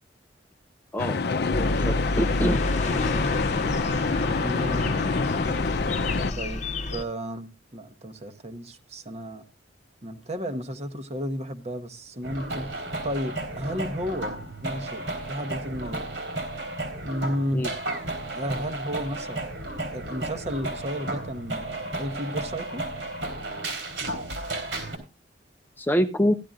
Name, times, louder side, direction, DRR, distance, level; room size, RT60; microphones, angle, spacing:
voice 1, 0.9-2.6 17.5-17.7 25.8-26.3, equal, 10° left, 0.5 m, -26 dB
sound 1, 1.0-6.3, left 4 dB, 60° left, 0.5 m, -27 dB
sound 2, 1.5-7.0, left 2 dB, 40° left, 0.9 m, -29 dB
voice 2, 2.8-3.2 4.4-5.0 6.3-9.4 10.0-14.4 14.6-16.1 17.0-17.7 18.3-19.5 19.9-22.9, equal, 35° right, 1.0 m, -33 dB
sound 3, 12.2-25.0, right 2 dB, 80° right, 3.6 m, -33 dB
15.0 x 11.5 x 2.4 m
head